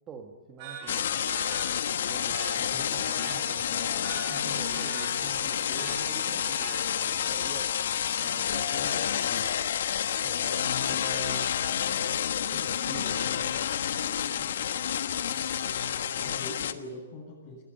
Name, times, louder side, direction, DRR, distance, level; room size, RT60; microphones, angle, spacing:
voice 1, 0.1-1.1 2.1-7.8 8.2-9.6 10.2-11.5 12.4-13.7 14.4-14.7, right 5 dB, 15° right, 2 dB, 1.8 m, -45 dB
sound 1, 0.6-7.3, right 6 dB, 35° right, 5.7 m, -44 dB
sound 2, 0.9-16.7, left 9 dB, 65° left, 1.3 m, -29 dB
voice 2, 2.7-3.1 16.1-17.6, left 1 dB, 30° left, -7 dB, 7.9 m, -43 dB
29.5 x 21.0 x 5.7 m, 1.2 s
hypercardioid pair, 165°, 0 cm